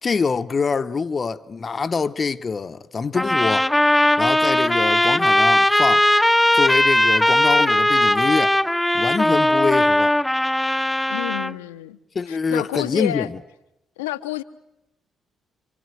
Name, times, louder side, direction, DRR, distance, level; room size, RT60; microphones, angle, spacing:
voice 1, 0.0-3.7 4.2-6.1 6.5-8.6 8.9-10.1 12.1-13.4, left 5 dB, 40° left, 1.0 m, -25 dB
sound 1, 3.1-11.5, left 1 dB, 10° left, 1.0 m, -18 dB
voice 2, 11.1-12.0 12.3-13.3 14.0-14.4, left 16 dB, 80° left, 1.1 m, -29 dB
28.0 x 26.0 x 8.0 m
figure-of-eight pair, 40°, 0 cm